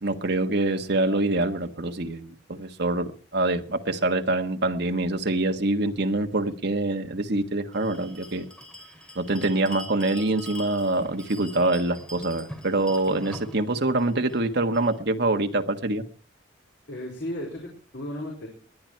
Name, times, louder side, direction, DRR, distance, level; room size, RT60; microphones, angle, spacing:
voice 1, 0.0-8.4 9.1-16.0, right 2 dB, 60° right, 1.5 m, -25 dB
Bell, 7.7-15.0, left 1 dB, 5° left, 2.9 m, -44 dB
voice 2, 16.9-18.5, left 1 dB, 60° left, 4.7 m, -34 dB
20.0 x 11.0 x 4.6 m
head